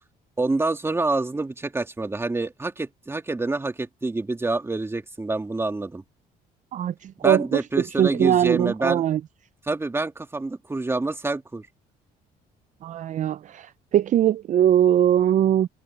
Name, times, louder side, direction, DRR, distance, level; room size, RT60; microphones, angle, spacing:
voice 1, 0.4-6.0 7.2-9.0 9.7-11.7, right 2 dB, 15° right, 2.5 m, -27 dB
voice 2, 6.7-7.4 8.0-9.2 12.8-15.7, right 10 dB, 45° right, 0.5 m, -21 dB
cardioid pair, 110°, 17 cm